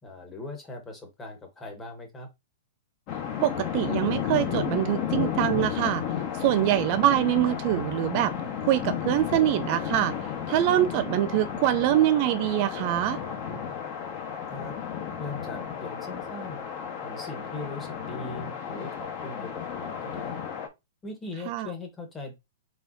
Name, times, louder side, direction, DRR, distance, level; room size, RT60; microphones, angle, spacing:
voice 1, 0.0-2.3 14.5-14.8 15.2-16.6 17.0-20.5 21.0-22.3, left 2 dB, 15° left, 1.5 m, -40 dB
sound 1, 3.1-20.7, left 8 dB, 40° left, 1.3 m, -33 dB
voice 2, 3.4-6.0 6.3-8.3 8.6-10.1 10.5-13.2 21.5-21.7, right 13 dB, 45° right, 0.4 m, -24 dB
4.0 x 3.8 x 2.8 m
hypercardioid pair, 145°, 0 cm